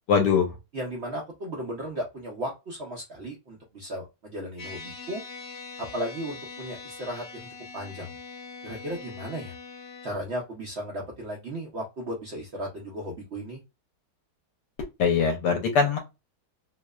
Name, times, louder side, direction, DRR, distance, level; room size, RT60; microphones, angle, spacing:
voice 1, 0.1-0.5 15.0-16.0, left 6 dB, 75° left, 4 dB, 1.1 m, -22 dB
voice 2, 0.7-5.2 5.8-7.2 7.7-8.1 8.6-9.5 10.0-13.6, equal, 85° right, -1 dB, 0.5 m, -35 dB
sound 1, 4.6-10.1, left 4 dB, 35° left, 0.8 m, -42 dB
2.9 x 2.0 x 2.2 m, 0.25 s
omnidirectional pair, 1.9 m